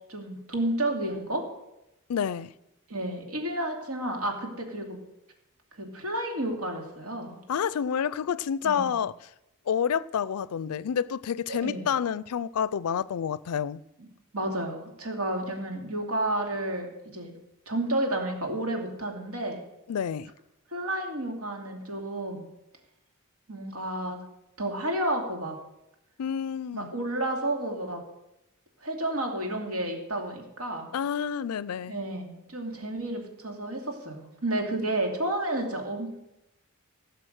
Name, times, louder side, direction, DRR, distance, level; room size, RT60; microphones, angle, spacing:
voice 1, 0.1-1.5 2.9-5.0 5.8-7.4 8.6-8.9 11.5-11.9 14.3-17.3 17.7-19.6 20.7-22.5 23.5-24.2 24.6-25.6 26.7-28.0 28.8-30.9 31.9-36.2, right 1 dB, 75° right, 2.7 m, -31 dB
voice 2, 2.1-2.5 7.5-9.1 9.7-13.8 19.9-20.3 26.2-26.9 30.9-32.0, left 7 dB, 80° left, 0.4 m, -29 dB
16.5 x 6.8 x 6.5 m
head